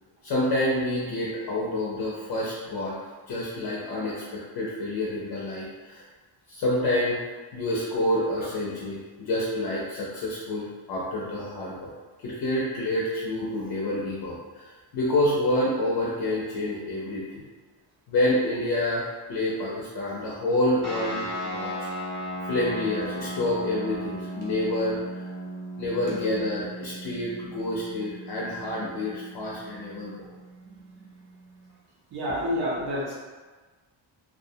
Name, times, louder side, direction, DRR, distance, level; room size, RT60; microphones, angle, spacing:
voice 1, 0.2-3.0 3.3-6.0 6.5-7.2 7.5-11.9 12.2-17.4 18.1-21.9 22.5-25.3 25.8-30.3, left 1 dB, 50° left, -5 dB, 0.5 m, -28 dB
sound 1, 20.8-31.7, right 1 dB, 10° left, 0.7 m, -37 dB
voice 2, 30.7-31.1 32.1-33.1, equal, 50° right, -6 dB, 0.6 m, -29 dB
2.4 x 2.0 x 2.7 m, 1.3 s
wide cardioid pair, 155°, 48 cm